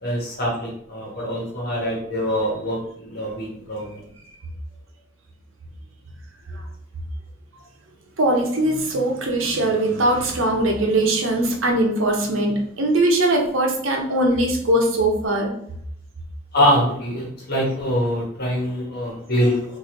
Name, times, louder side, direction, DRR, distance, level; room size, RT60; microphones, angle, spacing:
voice 1, 0.0-4.0 16.5-19.8, equal, 55° left, -3 dB, 1.2 m, -24 dB
voice 2, 8.2-15.5, right 1 dB, 80° right, 1 dB, 0.8 m, -21 dB
3.1 x 2.7 x 3.8 m, 0.70 s
head